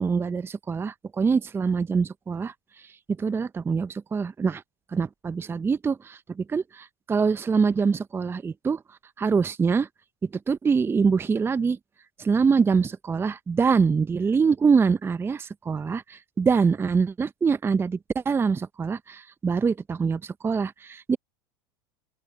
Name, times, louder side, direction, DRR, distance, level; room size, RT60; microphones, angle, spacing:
voice 1, 0.0-2.9 3.2-4.6 4.9-8.8 9.2-9.9 10.5-11.8 12.2-21.2, right 5 dB, 20° right, 0.6 m, -24 dB
open air
hypercardioid pair, 90°, 13 cm